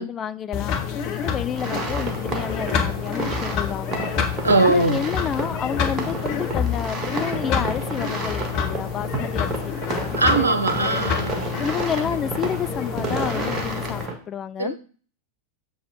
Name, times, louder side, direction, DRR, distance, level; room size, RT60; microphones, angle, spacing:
voice 1, 0.0-4.1 4.6-10.9 11.6-14.8, left 8 dB, 25° left, 0.3 m, -30 dB
sound 1, 0.5-14.1, left 7 dB, 40° left, 1.3 m, -28 dB
sound 2, 1.6-14.2, right 2 dB, 25° right, 1.8 m, -31 dB
voice 2, 4.4-5.1 10.2-11.4 12.0-12.2 14.6-14.8, right 3 dB, 75° right, 0.8 m, -21 dB
7.1 x 5.7 x 4.6 m
figure-of-eight pair, 90°, 0 cm